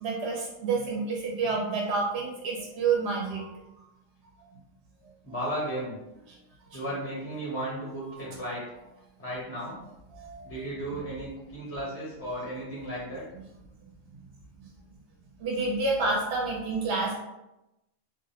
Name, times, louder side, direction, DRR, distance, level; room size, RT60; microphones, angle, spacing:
voice 1, 0.0-3.5 6.7-6.8 10.1-10.4 10.9-11.0 15.4-17.2, right 4 dB, 65° right, -2 dB, 0.7 m, -29 dB
voice 2, 5.2-6.0 6.7-8.6 9.2-9.8 10.4-13.2, right 1 dB, 20° left, -6 dB, 0.4 m, -34 dB
2.4 x 2.0 x 2.7 m, 0.92 s
omnidirectional pair, 1.3 m